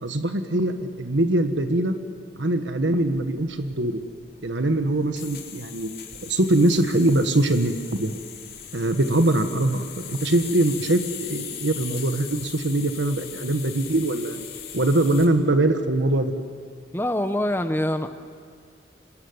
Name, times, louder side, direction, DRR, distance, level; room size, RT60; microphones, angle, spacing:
voice 1, 0.0-1.9 2.4-4.0 4.4-5.9 6.2-8.1 8.7-14.4 14.7-16.3, right 1 dB, 90° right, 7 dB, 1.4 m, -22 dB
sound 1, 3.0-15.3, left 9 dB, 50° left, 3.2 m, -39 dB
voice 2, 16.9-18.1, left 1 dB, 10° left, 8 dB, 0.9 m, -24 dB
27.0 x 20.0 x 9.5 m, 2.2 s
head